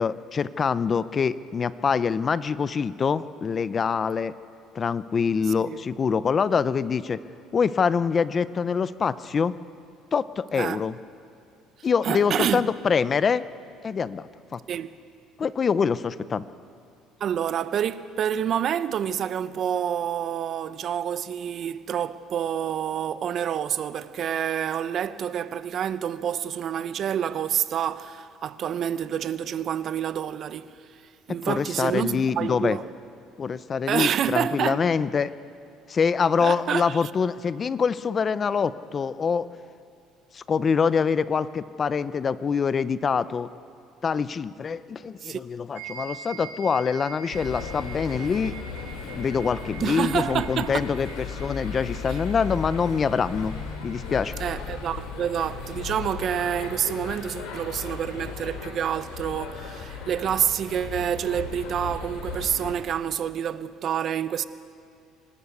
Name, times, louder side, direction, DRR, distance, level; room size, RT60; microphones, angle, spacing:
voice 1, 0.0-4.3 4.7-7.2 7.5-9.5 10.1-10.9 11.8-13.4 13.8-14.6 15.4-16.4 31.4-32.8 33.4-35.3 35.9-39.5 40.3-43.5 44.0-48.6 49.1-53.5 53.8-54.3, left 6 dB, 30° left, 0.5 m, -25 dB
voice 2, 12.0-12.6 14.7-15.0 17.2-31.0 31.3-32.9 33.9-34.9 36.4-37.1 45.2-45.4 49.8-50.9 52.1-52.2 54.4-64.4, right 9 dB, 50° right, 0.6 m, -28 dB
sound 1, 45.8-54.4, right 7 dB, 85° right, 3.0 m, -44 dB
sound 2, 47.3-62.7, left 5 dB, 90° left, 3.3 m, -36 dB
25.0 x 12.5 x 8.2 m
cardioid pair, 120°, 0 cm